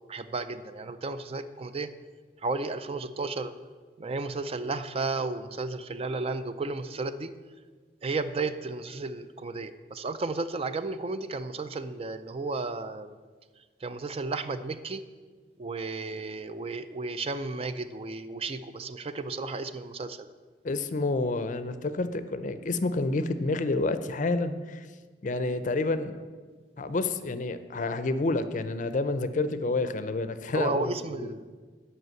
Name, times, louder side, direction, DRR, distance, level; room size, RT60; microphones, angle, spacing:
voice 1, 0.1-1.9 2.4-3.5 4.0-7.3 8.0-13.2 13.8-15.0 15.6-20.3 30.5-31.4, right 3 dB, 35° right, 11 dB, 0.4 m, -33 dB
voice 2, 20.6-24.9 25.2-26.2 26.8-31.3, left 2 dB, 45° left, 12 dB, 0.5 m, -29 dB
8.0 x 5.7 x 7.6 m, 1.4 s
head